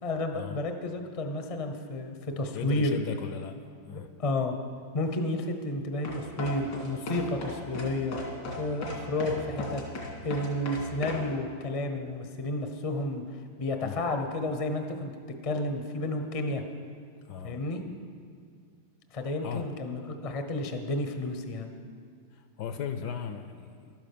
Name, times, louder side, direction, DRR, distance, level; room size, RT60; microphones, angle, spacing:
voice 1, 0.0-3.0 3.9-4.5 4.9-8.2 8.6-9.8 10.2-13.2 13.6-15.1 15.4-16.6 17.4-17.8 19.1-21.7, left 1 dB, 40° left, 5 dB, 0.5 m, -31 dB
voice 2, 2.5-3.6 3.8-4.1 13.8-14.0 17.3-17.6 19.4-19.7 22.3-23.9, left 7 dB, 70° left, 8 dB, 1.1 m, -37 dB
sound 1, 6.0-11.2, left 2 dB, 90° left, 2.8 m, -36 dB
11.5 x 9.8 x 6.8 m, 2.2 s
omnidirectional pair, 2.1 m